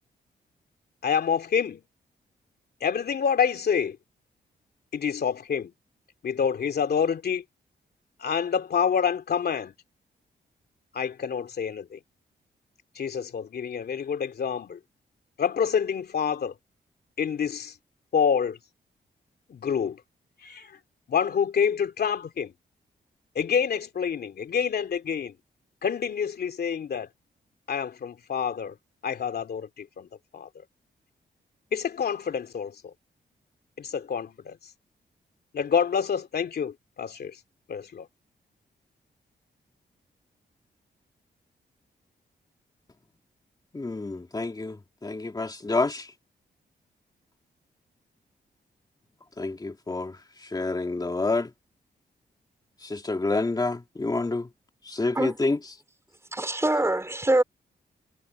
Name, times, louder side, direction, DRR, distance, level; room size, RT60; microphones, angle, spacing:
voice 1, 1.0-1.8 2.8-4.0 4.9-5.7 6.2-7.4 8.2-9.7 10.9-12.0 12.9-14.8 15.4-16.5 17.2-17.7 18.1-18.6 19.5-20.0 20.4-20.7 21.1-22.5 23.3-25.3 25.8-27.1 27.7-28.7 29.0-30.1 30.3-30.5 31.7-32.9 33.8-34.6 35.5-37.4 37.7-38.1, left 7 dB, 65° left, 2.7 m, -27 dB
voice 2, 43.7-46.1 49.4-50.2 50.5-51.5 52.8-54.5 54.9-55.6, left 3 dB, 20° left, 2.2 m, -28 dB
voice 3, 56.3-57.4, right 1 dB, 15° right, 4.6 m, -24 dB
cardioid pair, 100°, 18 cm